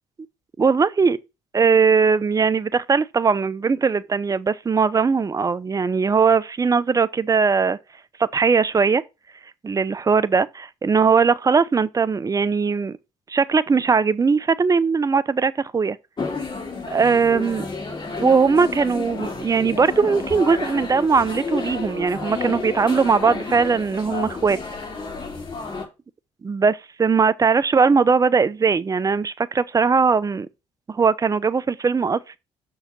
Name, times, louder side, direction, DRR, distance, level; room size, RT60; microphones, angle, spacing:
voice 1, 0.6-1.2 1.5-7.8 8.2-9.0 9.6-13.0 13.3-16.0 16.9-17.7 18.2-24.6 26.4-30.5 30.9-32.4, right 5 dB, 25° right, 0.7 m, -19 dB
sound 1, 16.2-25.9, left 4 dB, 35° left, 3.4 m, -31 dB
6.3 x 4.7 x 6.0 m
supercardioid pair, 65°, 13 cm